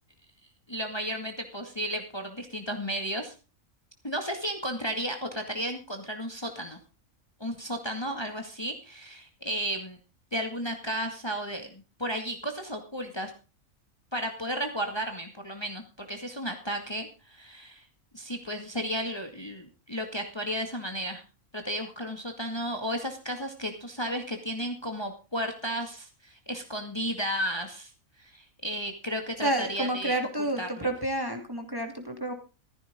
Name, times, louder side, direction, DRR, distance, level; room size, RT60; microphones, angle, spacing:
voice 1, 0.7-3.3 4.0-6.8 7.4-10.0 10.3-13.3 14.1-17.8 18.1-21.2 21.5-27.9 28.2-30.9, equal, 20° left, 4 dB, 2.2 m, -33 dB
voice 2, 29.4-32.3, right 1 dB, 15° right, 4 dB, 2.8 m, -30 dB
15.5 x 15.0 x 3.7 m, 0.32 s
omnidirectional pair, 1.4 m